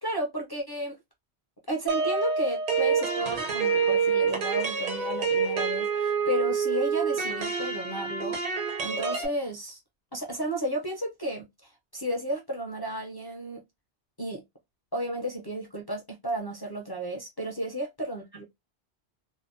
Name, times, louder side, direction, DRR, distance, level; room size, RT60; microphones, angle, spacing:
voice 1, 0.0-1.0 1.7-8.4 8.8-9.8 10.1-13.6 14.2-14.4 14.9-18.4, right 1 dB, 40° left, 0.3 m, -33 dB
sound 1, 1.9-9.3, right 5 dB, 50° right, 0.7 m, -27 dB
2.8 x 2.0 x 2.5 m
omnidirectional pair, 1.1 m